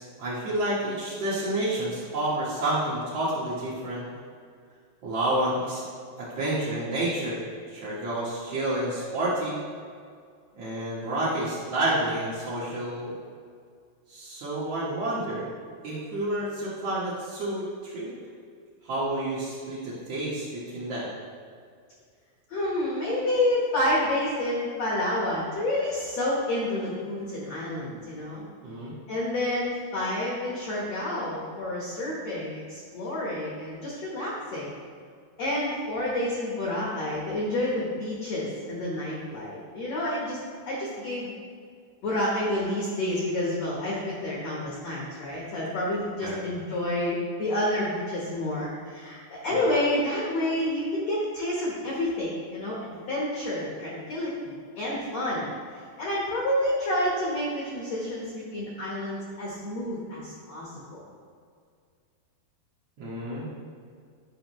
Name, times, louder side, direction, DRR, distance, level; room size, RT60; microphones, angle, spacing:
voice 1, 0.0-4.1 5.0-5.8 6.2-9.6 10.6-13.1 14.1-15.5 15.8-18.1 18.8-21.1 28.6-28.9 46.2-46.4 49.5-49.6 63.0-63.5, right 1 dB, 80° right, -9 dB, 1.4 m, -29 dB
voice 2, 22.5-28.4 29.1-34.7 35.4-40.4 40.7-41.3 42.0-55.5 56.0-61.0, left 1 dB, 75° left, -5 dB, 1.5 m, -29 dB
11.0 x 5.2 x 3.1 m, 2.2 s
omnidirectional pair, 4.9 m